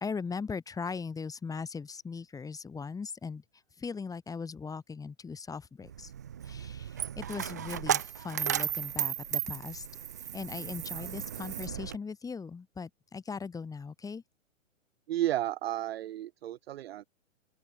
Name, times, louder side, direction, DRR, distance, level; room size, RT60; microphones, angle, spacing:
voice 1, 0.0-3.4 3.8-6.1 6.4-9.8 10.3-14.2, left 5 dB, 10° left, 2.9 m, -39 dB
Coin (dropping), 5.8-12.0, right 9 dB, 15° right, 0.3 m, -35 dB
voice 2, 15.1-17.0, right 13 dB, 50° right, 1.4 m, -33 dB
open air
hypercardioid pair, 130°, 39 cm